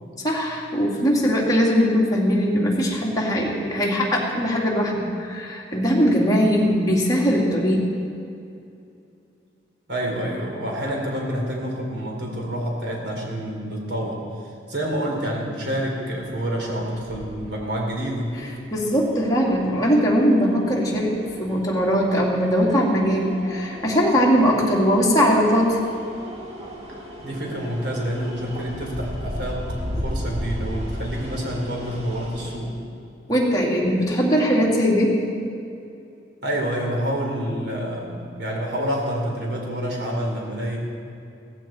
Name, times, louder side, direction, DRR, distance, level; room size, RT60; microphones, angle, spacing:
voice 1, 0.2-7.8 18.7-25.8 33.3-35.2, equal, 20° left, -4 dB, 2.6 m, -20 dB
voice 2, 9.9-14.2 14.7-18.4 27.2-29.7 30.0-32.8 36.4-40.8, equal, 70° right, -1 dB, 3.5 m, -28 dB
sound 1, 16.2-32.6, equal, 35° right, 2.4 m, -36 dB
16.5 x 15.0 x 4.5 m, 2.6 s
head